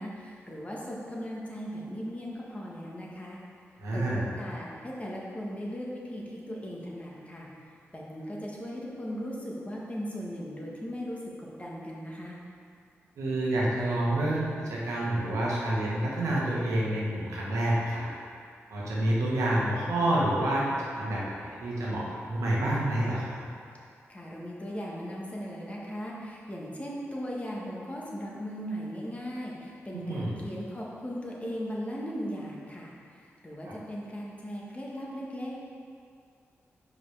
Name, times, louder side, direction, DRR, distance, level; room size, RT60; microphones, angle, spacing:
voice 1, 0.0-3.4 3.9-7.5 7.9-12.4 24.1-35.6, equal, 25° left, -4 dB, 1.6 m, -38 dB
voice 2, 3.8-4.2 13.2-18.1 18.7-23.4 29.9-30.3 33.6-33.7, right 1 dB, 90° right, -5 dB, 1.3 m, -28 dB
5.3 x 5.3 x 4.9 m, 2.4 s
cardioid pair, 50°, 5 cm